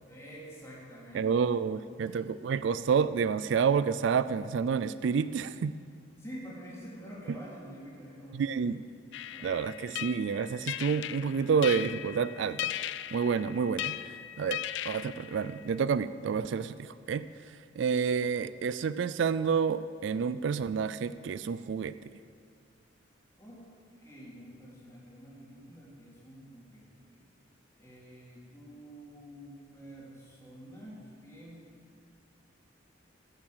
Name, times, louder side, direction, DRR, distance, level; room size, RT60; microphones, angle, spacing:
voice 1, 0.1-1.3 1.8-2.2 6.2-8.8 9.3-9.5 23.4-23.7 24.0-27.3 27.8-31.6, equal, 15° left, -6 dB, 3.3 m, -48 dB
voice 2, 1.1-5.7 8.3-8.8 9.4-12.7 13.1-14.0 14.4-17.2 17.8-21.9, right 6 dB, 65° right, 14 dB, 0.3 m, -29 dB
sound 1, 9.1-15.8, left 12 dB, 65° left, 0.3 m, -38 dB
13.5 x 7.2 x 7.8 m, 2.1 s
head